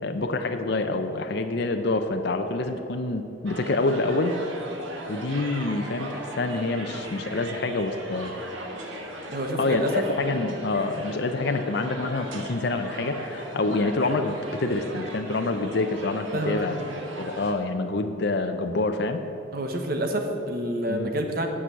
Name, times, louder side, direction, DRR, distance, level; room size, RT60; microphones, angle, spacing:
voice 1, 0.0-4.3 5.1-8.3 9.6-16.8 17.2-19.2 20.9-21.1, left 2 dB, 55° left, 6 dB, 0.5 m, -27 dB
sound 1, 3.5-17.5, right 1 dB, 75° right, 1.4 m, -37 dB
voice 2, 9.3-10.0 16.3-16.8 19.5-21.5, right 1 dB, 50° right, 4 dB, 1.0 m, -28 dB
8.7 x 6.1 x 8.0 m, 2.8 s
head